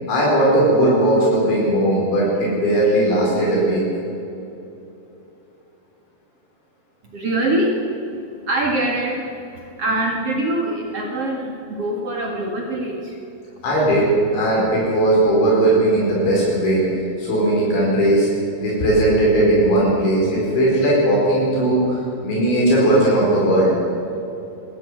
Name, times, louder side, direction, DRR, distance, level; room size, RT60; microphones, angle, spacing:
voice 1, 0.1-3.8 13.6-16.8 17.2-18.3 18.6-22.0 22.2-23.7, right 1 dB, 80° left, -5 dB, 7.2 m, -17 dB
voice 2, 7.0-7.9 8.3-13.2, right 1 dB, 45° right, 0 dB, 2.1 m, -24 dB
21.5 x 13.5 x 9.3 m, 2.8 s
omnidirectional pair, 5.3 m